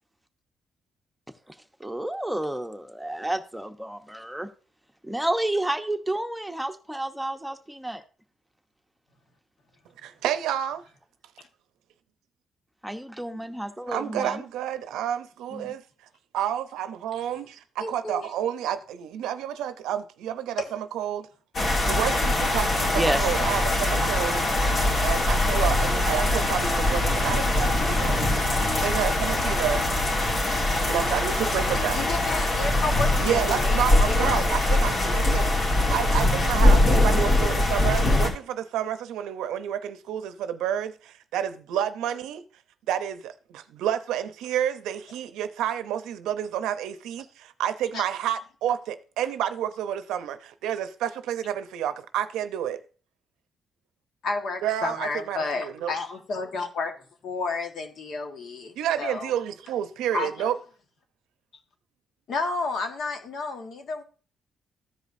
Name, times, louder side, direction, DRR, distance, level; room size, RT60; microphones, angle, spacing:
voice 1, 1.8-4.5 5.0-8.0 12.8-14.4 22.9-23.3, right 1 dB, 5° right, 0.9 m, -30 dB
voice 2, 10.0-10.8 13.3-13.4 13.9-15.8 16.3-21.3 21.9-24.4 25.0-28.2 28.8-29.9 30.9-32.0 33.2-42.4 42.9-52.8 54.6-55.9 58.8-60.6, right 10 dB, 90° right, 0.6 m, -29 dB
voice 3, 17.8-18.3 31.9-34.5 47.9-48.0 54.2-56.9 57.2-59.3 60.1-60.5 62.3-64.0, left 3 dB, 65° left, 1.5 m, -31 dB
sound 1, 21.5-38.3, left 1 dB, 50° left, 2.5 m, -22 dB
14.5 x 5.0 x 2.6 m
cardioid pair, 90°, 0 cm